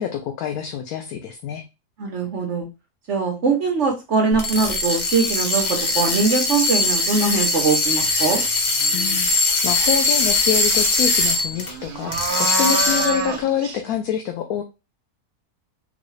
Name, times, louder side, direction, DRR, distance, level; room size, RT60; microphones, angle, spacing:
voice 1, 0.0-1.6 8.9-14.6, left 9 dB, 75° left, 5 dB, 1.0 m, -26 dB
voice 2, 2.0-2.7 3.1-5.7 5.9-8.4, right 4 dB, 55° right, 1 dB, 1.0 m, -21 dB
sound 1, 4.3-11.7 12.1-13.3, left 2 dB, 45° left, 0.6 m, -21 dB
sound 2, 8.0-8.2 8.7-9.3 10.6-10.7 11.0-13.8, right 3 dB, 75° right, 1.2 m, -28 dB
3.9 x 2.3 x 3.1 m, 0.26 s
omnidirectional pair, 1.7 m